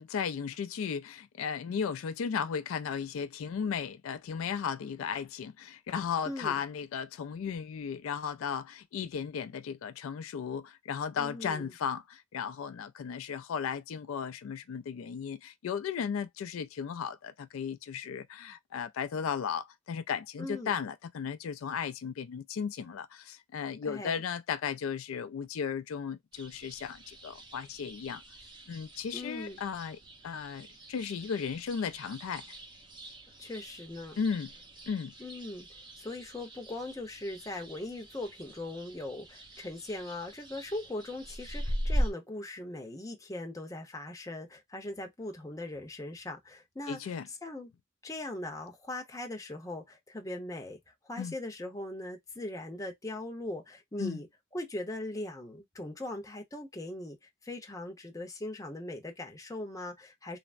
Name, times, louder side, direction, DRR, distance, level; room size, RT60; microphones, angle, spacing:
voice 1, 0.0-28.2 28.7-30.0 30.2-32.6 34.2-34.5 34.9-35.1 46.9-47.3 51.2-51.3 54.0-54.2, left 7 dB, 85° left, 0.4 m, -35 dB
voice 2, 6.3-6.6 11.2-11.7 20.4-20.8 23.8-24.2 29.1-29.6 33.4-34.2 35.2-35.7 36.0-47.7 48.0-50.8 51.0-54.3 54.5-57.2 57.4-60.4, left 1 dB, 15° left, 0.6 m, -40 dB
sound 1, 26.3-42.1, equal, 20° right, 0.6 m, -41 dB
3.3 x 2.0 x 2.5 m
head